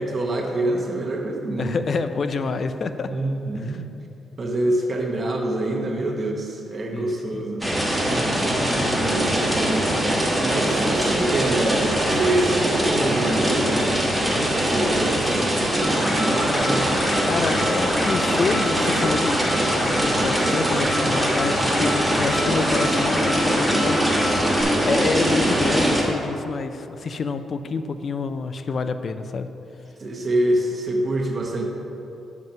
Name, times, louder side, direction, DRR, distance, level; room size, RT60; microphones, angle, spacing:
voice 1, 0.0-1.8 3.1-3.8 4.4-7.6 8.1-9.9 10.4-13.9 14.5-17.0 30.0-31.6, right 1 dB, 35° right, 0 dB, 0.9 m, -26 dB
voice 2, 1.6-3.1 3.5-3.8 6.9-7.4 17.2-19.4 19.8-29.5, left 4 dB, 45° left, 10 dB, 0.4 m, -28 dB
sound 1, 7.6-26.0, equal, ahead, 1.3 m, -22 dB
sound 2, 15.8-24.6, left 1 dB, 25° left, 1.0 m, -30 dB
7.3 x 6.0 x 5.3 m, 2.9 s
cardioid pair, 135°, 0 cm